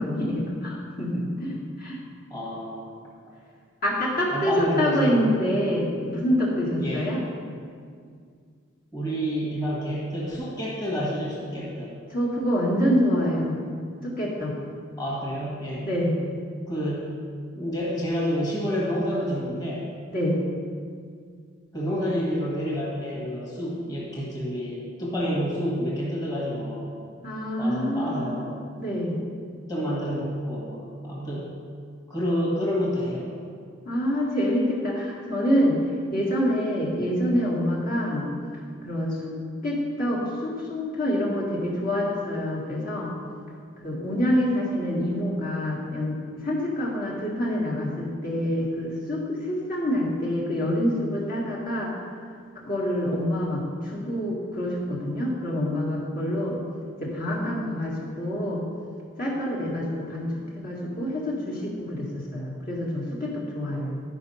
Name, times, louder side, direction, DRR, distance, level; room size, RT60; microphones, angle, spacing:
voice 1, 0.0-2.0 3.8-7.2 12.1-13.6 14.0-14.5 15.8-16.2 20.1-20.4 27.2-28.3 28.8-29.2 33.9-35.8 36.1-38.3 38.8-39.3 39.6-43.1 43.8-51.9 52.6-56.6 57.0-58.6 59.2-64.0, equal, 45° left, -5 dB, 1.9 m, -26 dB
voice 2, 2.3-2.9 4.3-5.4 6.8-7.1 8.9-11.9 15.0-15.9 16.7-17.1 17.5-19.9 21.7-27.0 27.6-28.5 29.7-31.5 32.1-33.3, equal, 20° left, -6 dB, 1.7 m, -29 dB
11.0 x 5.2 x 5.6 m, 2.1 s
head